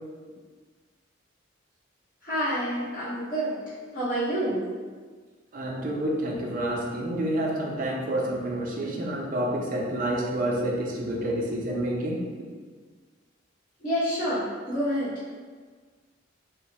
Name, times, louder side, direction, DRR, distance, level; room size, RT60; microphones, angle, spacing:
voice 1, 2.2-3.6 3.9-4.6 13.8-15.1, equal, 45° left, -13 dB, 1.5 m, -28 dB
voice 2, 5.5-12.2, right 1 dB, 45° right, -1 dB, 0.4 m, -28 dB
3.0 x 2.0 x 2.7 m, 1.5 s
head